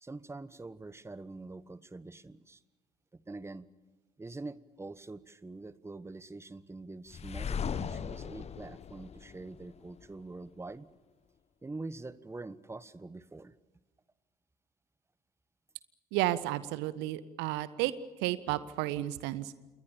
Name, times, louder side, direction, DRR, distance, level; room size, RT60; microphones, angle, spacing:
voice 1, 0.0-2.6 3.1-3.6 4.2-10.9 11.6-13.5, right 3 dB, 15° right, 17 dB, 1.3 m, -45 dB
sound 1, 7.1-10.1, left 7 dB, 30° left, 1.2 m, -38 dB
voice 2, 16.1-17.9 18.2-19.6, right 16 dB, 60° right, 16 dB, 1.4 m, -32 dB
28.0 x 22.0 x 7.1 m, 1.2 s
figure-of-eight pair, 55°, 21 cm